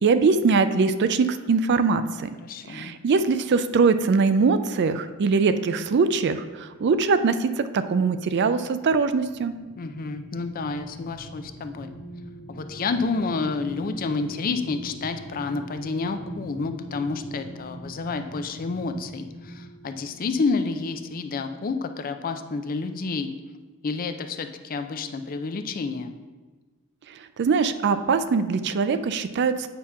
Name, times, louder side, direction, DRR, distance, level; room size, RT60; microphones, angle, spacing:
voice 1, 0.0-2.3 2.7-9.5 27.4-29.7, right 4 dB, 50° right, 11 dB, 0.4 m, -22 dB
voice 2, 2.4-2.9 9.8-11.9 12.5-23.3 23.8-26.1, left 4 dB, 40° left, 8 dB, 0.4 m, -29 dB
sound 1, 8.8-21.7 22.1-22.3, right 1 dB, 65° left, 1.2 m, -42 dB
8.5 x 2.9 x 5.7 m, 1.3 s
head